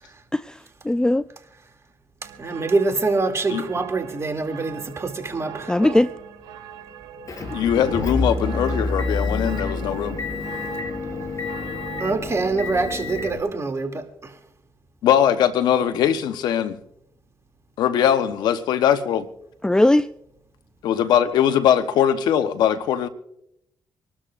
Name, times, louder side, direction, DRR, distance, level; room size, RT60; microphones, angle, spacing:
voice 1, 0.9-1.2 5.7-6.1 19.6-20.1, left 1 dB, 10° left, 0.5 m, -17 dB
sound 1, 2.2-12.5, right 9 dB, 75° right, 3.7 m, -41 dB
voice 2, 2.4-6.0 12.0-14.3, right 3 dB, 40° right, 2.6 m, -25 dB
Motor vehicle (road) / Engine, 7.3-13.4, left 3 dB, 50° left, 6.4 m, -28 dB
voice 3, 7.5-10.2 15.0-16.8 17.8-19.3 20.8-23.1, left 9 dB, 80° left, 0.9 m, -20 dB
26.0 x 12.5 x 2.5 m
supercardioid pair, 50°, 7 cm